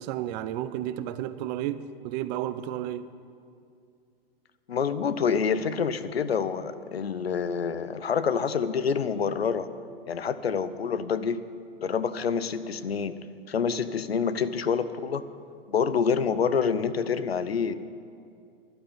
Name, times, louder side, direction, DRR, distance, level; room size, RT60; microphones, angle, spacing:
voice 1, 0.0-3.1, right 12 dB, 45° right, 0.8 m, -32 dB
voice 2, 4.7-9.7 10.0-11.5 11.8-13.2 13.5-15.3 15.7-17.8, left 6 dB, 90° left, 0.8 m, -27 dB
12.0 x 9.0 x 9.8 m
hypercardioid pair, 105°, 30 cm